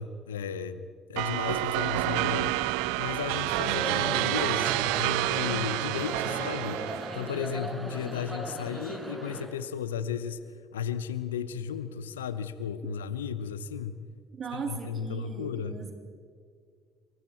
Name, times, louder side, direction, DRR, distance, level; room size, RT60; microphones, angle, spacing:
voice 1, 0.0-2.6 3.0-6.8 7.1-10.4 10.7-14.1 14.5-15.8, left 7 dB, 85° left, 14 dB, 0.9 m, -34 dB
sound 1, 1.2-7.4, right 18 dB, 70° right, 0.5 m, -29 dB
sound 2, 3.4-9.4, right 1 dB, 25° right, 6.6 m, -38 dB
voice 2, 14.3-15.9, right 5 dB, 45° right, 4 dB, 3.3 m, -38 dB
26.0 x 25.0 x 4.6 m, 2.2 s
hypercardioid pair, 55°, 0 cm